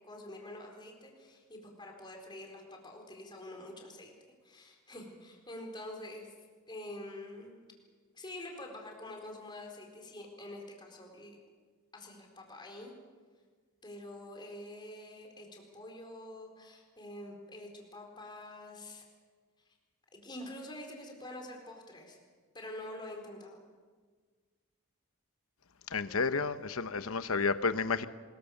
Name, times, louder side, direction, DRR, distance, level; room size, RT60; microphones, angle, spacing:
voice 1, 0.1-4.1 4.4-6.3 6.7-7.6 8.1-11.4 11.9-12.9 13.8-19.0 20.1-22.2 22.5-23.6, left 1 dB, 20° left, 1 dB, 4.3 m, -46 dB
voice 2, 25.9-28.0, left 4 dB, 70° left, 11 dB, 1.0 m, -31 dB
24.5 x 21.5 x 6.7 m, 1.5 s
head